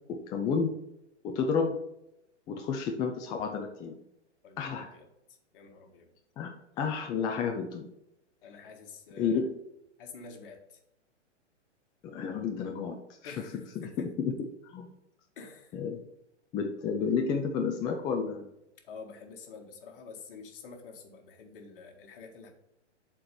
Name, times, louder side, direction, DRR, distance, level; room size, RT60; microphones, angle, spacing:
voice 1, 0.1-0.8 1.2-1.8 2.5-4.0 4.6-4.9 6.4-7.9 9.2-9.5 12.0-13.3 13.8-14.3 14.6-14.8 15.7-16.0 16.5-18.5, left 5 dB, 15° left, 3 dB, 0.4 m, -31 dB
voice 2, 4.4-6.1 8.4-9.4 10.0-10.8 13.2-14.1 15.4-15.8 18.8-22.5, left 4 dB, 50° left, 3 dB, 1.8 m, -48 dB
7.4 x 4.4 x 6.7 m, 0.82 s
figure-of-eight pair, 120°, 35 cm